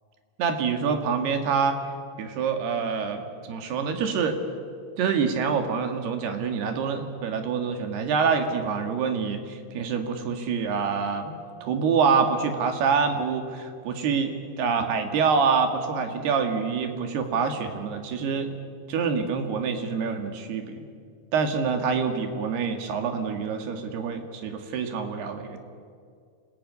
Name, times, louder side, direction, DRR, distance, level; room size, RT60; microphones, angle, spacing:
voice 1, 0.4-1.8 2.2-4.4 5.0-18.5 18.9-20.8 21.3-25.6, right 5 dB, 75° right, 5 dB, 4.0 m, -26 dB
28.0 x 20.0 x 9.6 m, 2.2 s
omnidirectional pair, 4.7 m